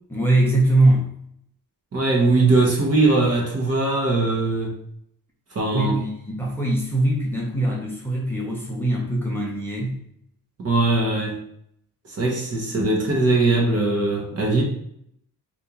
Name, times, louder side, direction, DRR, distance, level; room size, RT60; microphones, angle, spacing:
voice 1, 0.1-1.1 5.7-10.0, right 1 dB, 5° left, -3 dB, 0.6 m, -22 dB
voice 2, 1.9-4.7 5.5-6.0 10.6-11.4 12.1-14.6, right 2 dB, 40° right, 0 dB, 1.0 m, -20 dB
2.9 x 2.6 x 3.7 m, 0.71 s
cardioid pair, 135°, 36 cm